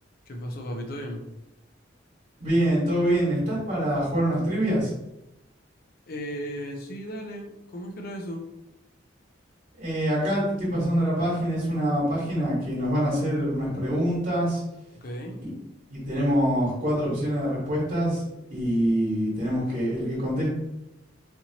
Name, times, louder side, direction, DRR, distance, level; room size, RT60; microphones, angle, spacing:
voice 1, 0.3-1.2 6.1-8.4 15.0-15.4, equal, 55° left, 2 dB, 0.5 m, -35 dB
voice 2, 2.4-4.9 9.7-14.6 15.4-15.5 15.9-20.5, equal, 50° right, -7 dB, 1.4 m, -25 dB
4.3 x 2.7 x 2.8 m, 0.89 s
head